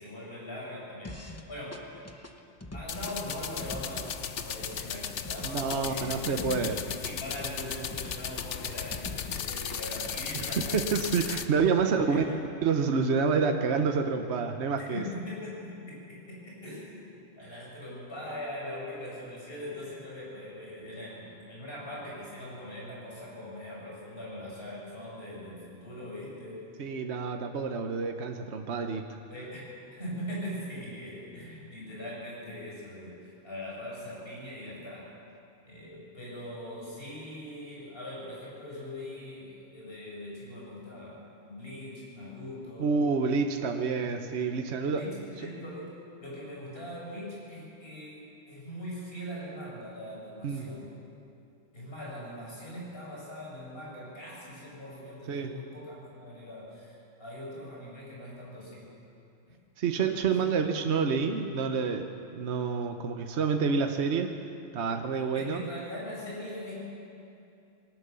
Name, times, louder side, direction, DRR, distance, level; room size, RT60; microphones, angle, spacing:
voice 1, 0.0-1.8 2.7-10.8 11.9-12.4 14.9-26.7 29.3-29.7 30.0-35.1 35.7-43.0 44.9-50.9 51.7-59.0 60.3-60.9 65.3-66.8, left 1 dB, 50° left, -5 dB, 7.1 m, -41 dB
sound 1, 1.0-1.5 1.7-9.5 9.7-11.7, left 2 dB, 15° left, 0.9 m, -44 dB
sound 2, 2.9-11.5, left 8 dB, 70° left, 1.1 m, -36 dB
voice 2, 5.4-6.8 10.3-12.2 12.6-15.0 26.8-29.2 42.8-45.1 50.4-50.6 55.3-55.5 59.8-64.4 64.7-65.6, right 5 dB, 60° right, 5 dB, 1.2 m, -28 dB
20.0 x 18.5 x 6.9 m, 2.6 s
omnidirectional pair, 1.3 m